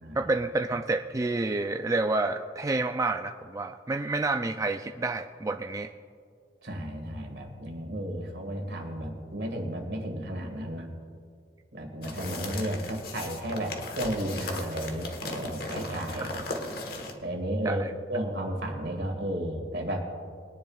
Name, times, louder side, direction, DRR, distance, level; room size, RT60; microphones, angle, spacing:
voice 1, 0.1-5.9 17.6-17.9, right 3 dB, 20° right, 5 dB, 0.3 m, -29 dB
voice 2, 6.6-10.9 11.7-16.3 17.2-17.8 18.1-20.1, right 1 dB, 70° right, 3 dB, 1.9 m, -33 dB
sound 1, 12.0-17.1, left 1 dB, 60° left, 1.3 m, -36 dB
21.0 x 10.5 x 2.4 m, 2.2 s
head